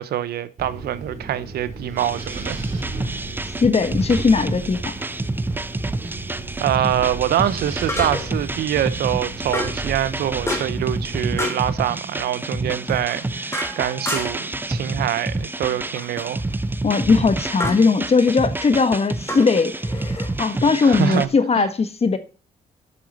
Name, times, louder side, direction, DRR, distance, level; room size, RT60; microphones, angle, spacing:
voice 1, 0.0-2.6 6.6-16.4 20.8-21.3 21.5-21.7, right 11 dB, 85° right, 0.8 m, -25 dB
Wind, 0.6-11.3, right 3 dB, 45° right, 4.4 m, -34 dB
sound 1, 2.0-21.3, right 2 dB, 15° right, 0.6 m, -29 dB
voice 2, 3.6-4.9 16.8-22.2, left 4 dB, 40° left, 1.4 m, -19 dB
sound 2, 4.2-4.3 7.9-8.4 9.5-9.9 10.5-10.9 11.4-11.7 12.9-14.5 15.9-16.3 17.6-17.9 19.3-20.3, left 1 dB, 15° left, 3.1 m, -29 dB
8.4 x 5.9 x 5.2 m
cardioid pair, 80°, 16 cm